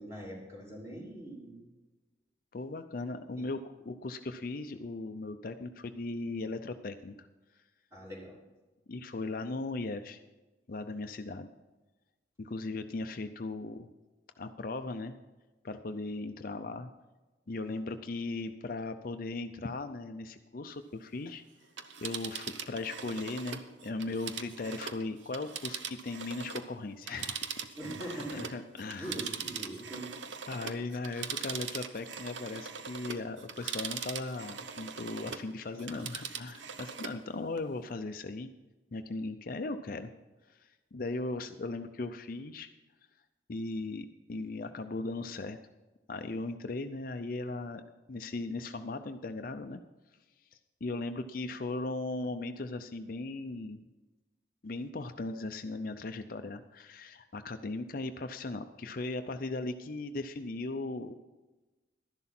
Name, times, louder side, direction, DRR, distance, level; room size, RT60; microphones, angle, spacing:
voice 1, 0.0-1.7 3.4-3.5 7.9-8.4 27.8-28.5 29.0-30.1, right 1 dB, 15° right, -2 dB, 3.0 m, -42 dB
voice 2, 2.5-7.2 8.9-10.2 10.7-11.5 12.4-13.9 14.4-15.2 15.6-16.9 17.5-21.4 22.0-27.6 28.1-29.1 30.5-38.5 38.9-40.1 40.5-42.7 43.5-45.6 46.1-47.8 48.1-49.8 50.8-53.8 54.6-61.1, left 2 dB, 50° left, 8 dB, 0.5 m, -38 dB
Telephone, 21.6-26.7 27.0-35.5 35.8-37.2 37.6-37.7, right 7 dB, 80° right, 0.8 m, -41 dB
12.5 x 11.0 x 4.3 m, 1.1 s
head